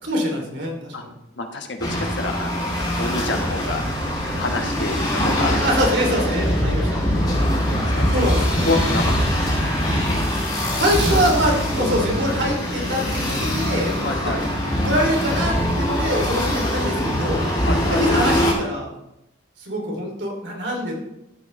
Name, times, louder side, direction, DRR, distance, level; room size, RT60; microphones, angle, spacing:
voice 1, 0.0-1.1 5.6-7.3 8.1-8.6 10.8-13.9 14.3-14.5 14.8-17.4 17.9-18.9 19.6-20.9, equal, 65° right, 0 dB, 2.8 m, -24 dB
voice 2, 1.4-3.9 4.4-5.6 6.3-6.8 7.9-9.1 9.8-10.3 14.0-14.4 17.6-18.0, left 2 dB, 65° left, 4 dB, 1.2 m, -28 dB
sound 1, 1.8-18.5, equal, 20° left, 2.4 m, -22 dB
13.5 x 7.8 x 3.2 m, 0.86 s
head